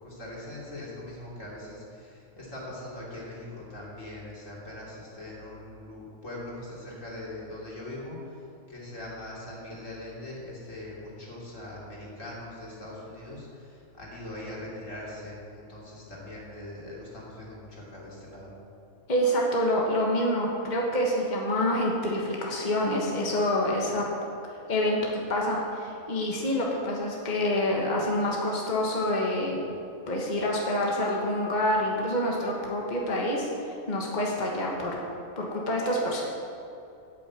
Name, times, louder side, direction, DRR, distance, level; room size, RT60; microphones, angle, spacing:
voice 1, 0.0-18.5, left 1 dB, 75° left, -5 dB, 3.4 m, -41 dB
voice 2, 19.1-24.0 24.7-29.6 30.1-35.0 35.4-36.2, left 1 dB, 35° left, -2 dB, 1.5 m, -27 dB
8.6 x 8.6 x 8.5 m, 2.7 s
omnidirectional pair, 1.3 m